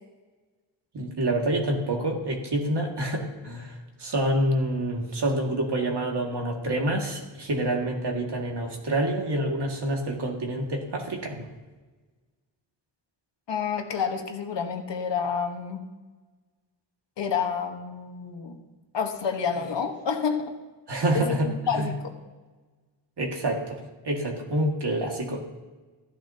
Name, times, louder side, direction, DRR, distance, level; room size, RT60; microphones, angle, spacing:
voice 1, 0.9-11.4 20.9-21.5 21.7-21.9 23.2-23.8 24.0-25.4, right 1 dB, 65° right, 0 dB, 2.2 m, -27 dB
voice 2, 13.5-15.8 17.2-18.6 18.9-20.4 21.1-21.9, left 6 dB, 70° left, 4 dB, 1.4 m, -29 dB
14.0 x 10.5 x 2.9 m, 1.2 s
cardioid pair, 60°, 44 cm